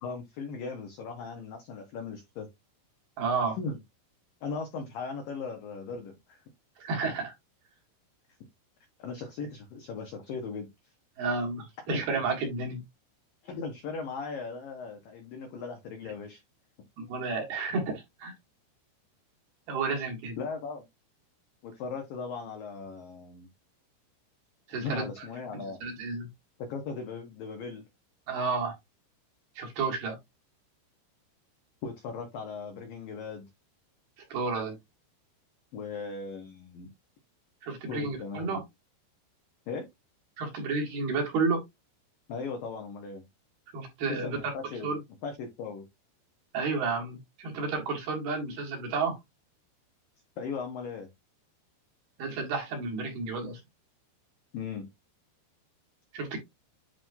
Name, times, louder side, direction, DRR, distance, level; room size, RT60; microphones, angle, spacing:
voice 1, 0.0-2.5 3.6-3.8 4.4-6.4 9.0-10.7 11.9-12.1 13.4-16.4 20.4-20.8 21.6-23.5 24.8-25.8 26.6-27.8 31.8-33.5 35.7-36.9 37.9-38.6 39.7-39.8 42.3-43.2 44.1-45.0 45.2-45.8 50.4-51.1 54.5-54.9, left 4 dB, 90° left, 1.9 m, -38 dB
voice 2, 3.2-3.6 6.8-7.3 11.2-12.8 17.0-18.3 19.7-20.4 24.7-25.1 25.5-26.3 28.3-28.8 29.6-30.2 34.3-34.8 37.6-38.6 40.4-41.6 43.7-44.4 44.8-45.0 46.5-49.1 52.2-53.6 56.1-56.4, right 4 dB, 60° right, 3.3 m, -31 dB
10.5 x 3.7 x 2.7 m
omnidirectional pair, 5.9 m